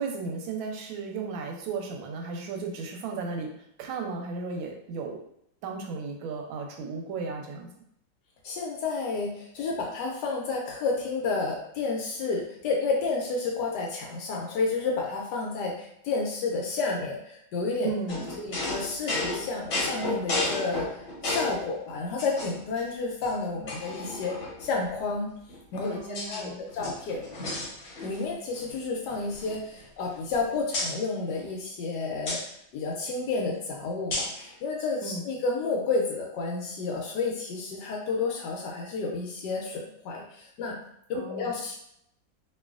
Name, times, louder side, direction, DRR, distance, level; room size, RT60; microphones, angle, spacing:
voice 1, 0.0-3.5 3.8-5.2 5.6-7.7 17.8-18.5 25.9-26.7 35.0-35.2 41.1-41.6, right 4 dB, 90° right, 2 dB, 1.4 m, -35 dB
voice 2, 8.4-20.9 21.2-24.3 24.6-25.3 25.7-27.2 28.0-40.8 41.1-41.7, left 3 dB, 75° left, 0 dB, 1.0 m, -31 dB
sound 1, 18.1-21.7 22.2-22.8 23.2-23.3 23.7-24.7 25.5-26.4 26.7-28.3 28.5-28.8 29.1-30.4 30.7-30.9 32.3-32.4 34.1-34.4, left 2 dB, 50° left, 1.0 m, -33 dB
3.0 x 2.6 x 2.4 m, 0.73 s
omnidirectional pair, 2.1 m